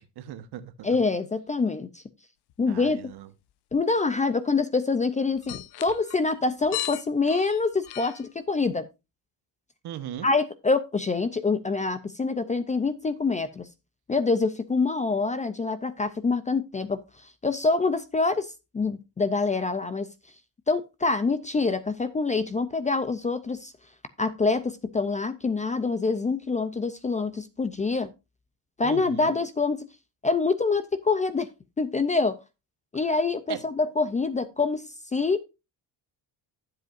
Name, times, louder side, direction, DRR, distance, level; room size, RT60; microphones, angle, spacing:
voice 1, 0.0-1.0 2.7-3.3 9.8-10.3 28.8-29.3 33.5-33.6, right 11 dB, 70° right, 1.2 m, -38 dB
voice 2, 0.8-2.0 2.6-3.0 3.7-8.9 10.2-13.7 14.1-17.0 17.4-20.1 20.7-23.7 24.2-28.1 28.8-29.9 30.2-31.5 31.8-32.4 32.9-34.8 35.1-35.4, left 4 dB, 20° left, 0.4 m, -26 dB
sound 1, 2.5-2.6 3.1-3.2 3.7-3.8 5.3-8.3, left 16 dB, 70° left, 0.6 m, -36 dB
12.0 x 7.7 x 2.5 m
cardioid pair, 170°, 41 cm